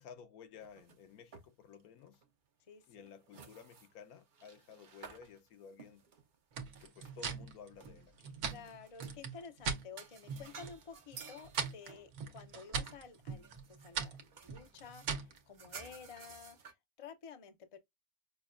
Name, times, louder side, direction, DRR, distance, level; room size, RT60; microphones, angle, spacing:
voice 1, 0.0-2.2 2.9-6.0 6.8-8.3, left 6 dB, 75° left, 1.2 m, -54 dB
sound 1, 0.5-1.8 2.1-2.3 2.8-7.4 7.8-9.2 9.7-16.7, right 6 dB, 50° right, 0.5 m, -55 dB
voice 2, 2.7-3.1 8.4-13.5 13.8-14.2 14.4-16.6 17.0-17.8, left 6 dB, 50° left, 0.4 m, -52 dB
sound 2, 6.5-9.9 10.2-10.8 11.1-15.4, right 6 dB, 80° right, 1.3 m, -40 dB
5.9 x 2.2 x 2.4 m
omnidirectional pair, 1.6 m